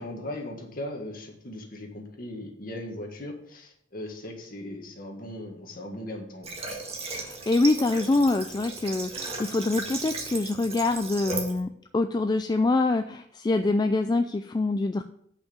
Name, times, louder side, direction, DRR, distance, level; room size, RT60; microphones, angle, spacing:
voice 1, 0.0-6.5, left 1 dB, 50° left, 2 dB, 1.8 m, -38 dB
Water / Water tap faucet, 6.4-11.6, right 3 dB, 30° right, 1.7 m, -36 dB
voice 2, 7.2-15.0, left 2 dB, 20° left, 8 dB, 0.3 m, -25 dB
6.6 x 5.8 x 7.1 m, 0.69 s
head